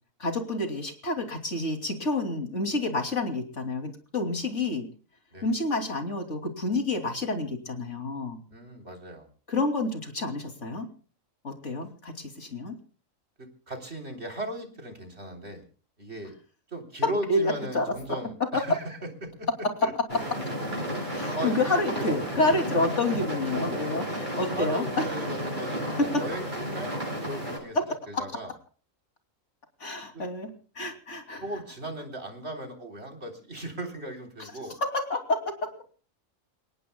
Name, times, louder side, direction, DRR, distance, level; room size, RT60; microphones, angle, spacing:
voice 1, 0.2-4.9 5.4-8.4 9.5-10.9 11.4-12.8 17.0-17.9 18.5-18.6 21.1-24.8 29.8-31.4 34.4-34.5 34.8-35.7, left 2 dB, 60° left, 5 dB, 3.2 m, -29 dB
voice 2, 8.5-9.3 13.4-15.6 16.0-16.4 16.7-19.5 19.8-19.9 21.3-22.6 24.6-26.9 27.3-27.8 28.1-28.5 30.1-30.3 31.4-34.8, right 1 dB, 50° right, 4 dB, 3.8 m, -37 dB
sound 1, 20.1-27.6, equal, 35° right, 8.3 m, -32 dB
29.0 x 18.0 x 2.2 m, 0.41 s
omnidirectional pair, 1.4 m